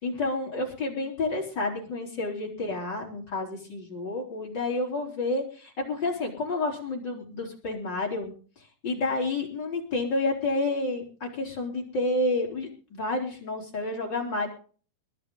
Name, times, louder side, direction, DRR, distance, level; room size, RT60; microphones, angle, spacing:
voice 1, 0.0-8.3 8.8-14.5, left 2 dB, 30° left, -2 dB, 4.0 m, -30 dB
22.0 x 9.4 x 3.8 m, 0.41 s
omnidirectional pair, 4.3 m